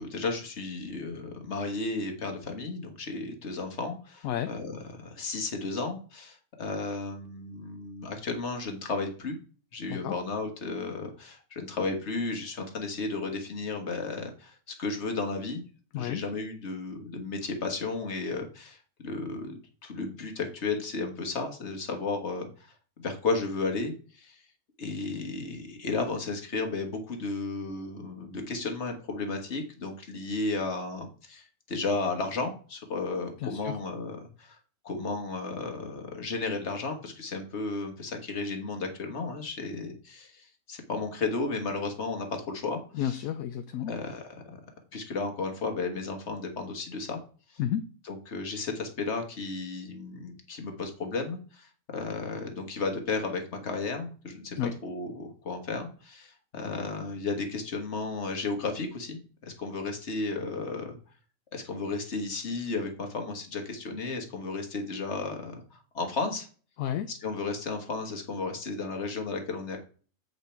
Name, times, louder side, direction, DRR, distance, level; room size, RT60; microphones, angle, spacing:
voice 1, 0.0-9.4 9.7-15.6 15.9-22.7 23.0-24.4 24.8-34.6 34.8-43.2 43.9-44.4 44.9-47.2 47.5-47.6 48.1-54.6 54.8-61.0 61.5-66.5 67.1-69.8, left 3 dB, 50° left, 4 dB, 1.6 m, -34 dB
voice 2, 33.4-33.8 42.9-43.9 47.6-47.9 54.6-54.7 66.8-67.1, left 10 dB, 75° left, 9 dB, 1.0 m, -31 dB
7.9 x 5.4 x 4.4 m, 0.40 s
omnidirectional pair, 1.6 m